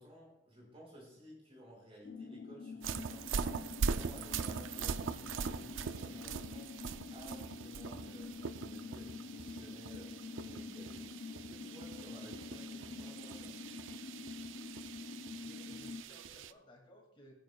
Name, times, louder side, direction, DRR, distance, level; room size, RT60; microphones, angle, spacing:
voice 1, 0.0-6.8 7.1-13.6, equal, 30° right, -3 dB, 5.0 m, -56 dB
sound 1, 2.0-16.0, left 4 dB, 60° left, 0.5 m, -47 dB
sound 2, 2.8-16.5, right 5 dB, 90° right, 0.5 m, -41 dB
voice 2, 15.0-17.3, equal, 25° left, 1 dB, 2.1 m, -60 dB
20.0 x 9.4 x 2.3 m, 0.83 s
head